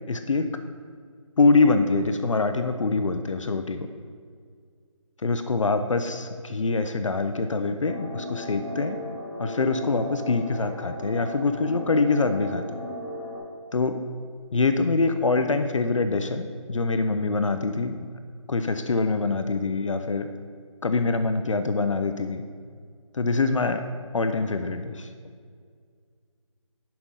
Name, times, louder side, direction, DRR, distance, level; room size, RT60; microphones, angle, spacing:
voice 1, 0.1-0.5 1.4-3.9 5.2-9.0 9.4-12.8 13.7-14.0 14.5-18.1 18.5-20.3 20.8-22.4 23.1-23.8 24.1-25.1, left 3 dB, 65° left, 8 dB, 0.5 m, -24 dB
sound 1, 7.8-13.4, equal, 25° left, 1.4 m, -37 dB
10.0 x 3.7 x 5.5 m, 2.1 s
figure-of-eight pair, 170°, 17 cm